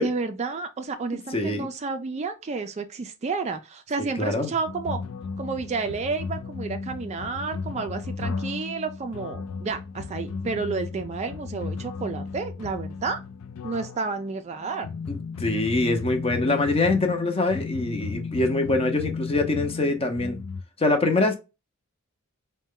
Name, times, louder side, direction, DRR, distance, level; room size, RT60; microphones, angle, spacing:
voice 1, 0.0-5.0 5.4-13.2 13.6-14.9, right 4 dB, 30° right, 0.3 m, -31 dB
voice 2, 1.3-1.7 4.0-4.5 15.1-20.4 20.8-21.4, left 2 dB, 25° left, 0.6 m, -24 dB
sound 1, 4.7-20.6, left 5 dB, 75° left, 0.4 m, -34 dB
4.1 x 2.2 x 3.6 m
head